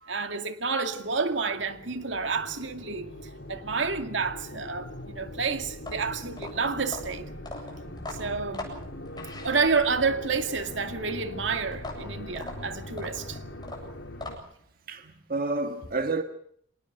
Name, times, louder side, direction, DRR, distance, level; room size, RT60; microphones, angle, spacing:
voice 1, 0.0-3.1 3.5-7.3 8.2-8.7 9.4-13.4, right 4 dB, 80° right, 2.3 m, -29 dB
sound 1, 0.8-14.4, left 1 dB, 90° left, 4.3 m, -41 dB
sound 2, 5.7-10.0 11.7-14.7, left 2 dB, 25° left, 7.9 m, -41 dB
voice 2, 14.9-16.2, right 3 dB, 50° right, 1.7 m, -29 dB
26.5 x 19.5 x 6.6 m
head